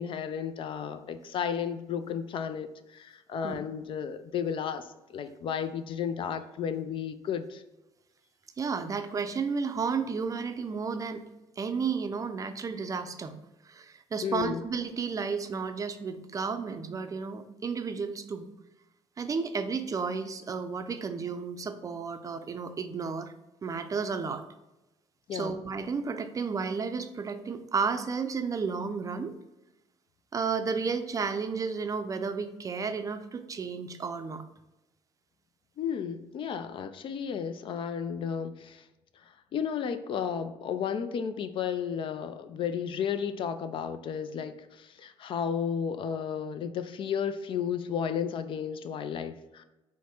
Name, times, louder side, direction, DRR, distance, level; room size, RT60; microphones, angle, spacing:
voice 1, 0.0-7.6 14.2-14.6 25.3-25.6 35.8-38.8 39.5-49.6, left 7 dB, 55° left, 11 dB, 0.4 m, -33 dB
voice 2, 8.6-11.3 11.6-13.4 13.6-18.5 19.2-23.3 23.6-24.4 25.3-29.3 30.3-34.4, right 5 dB, 35° right, 8 dB, 0.4 m, -32 dB
4.6 x 2.1 x 4.3 m, 0.98 s
cardioid pair, 85°, 10 cm